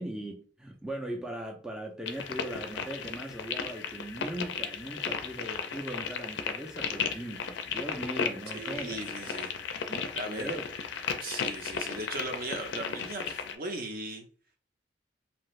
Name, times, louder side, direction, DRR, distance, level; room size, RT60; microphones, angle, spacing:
voice 1, 0.0-9.1 9.9-10.7, right 1 dB, 5° right, 0.4 m, -39 dB
sound 1, 2.1-13.5, left 6 dB, 65° left, 0.4 m, -35 dB
voice 2, 8.5-9.5 10.2-10.6 11.2-14.3, right 2 dB, 50° right, 0.6 m, -38 dB
2.6 x 2.5 x 3.1 m
head